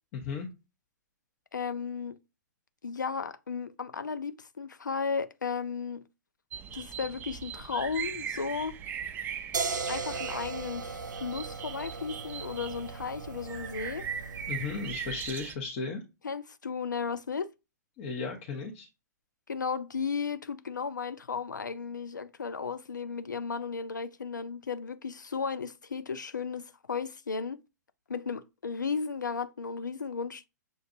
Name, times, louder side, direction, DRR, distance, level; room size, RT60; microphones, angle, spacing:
voice 1, 0.1-0.5 14.5-16.0 18.0-18.9, left 5 dB, 40° left, 1.0 m, -35 dB
voice 2, 1.5-2.2 2.8-6.0 6.7-8.8 9.9-14.1 16.2-17.5 19.5-27.6 28.1-30.5, left 5 dB, 90° left, 0.4 m, -34 dB
sound 1, 6.5-15.6, right 8 dB, 20° right, 0.3 m, -40 dB
sound 2, 9.5-15.4, right 4 dB, 85° right, 0.4 m, -38 dB
6.7 x 2.5 x 2.5 m
figure-of-eight pair, 120°, 10 cm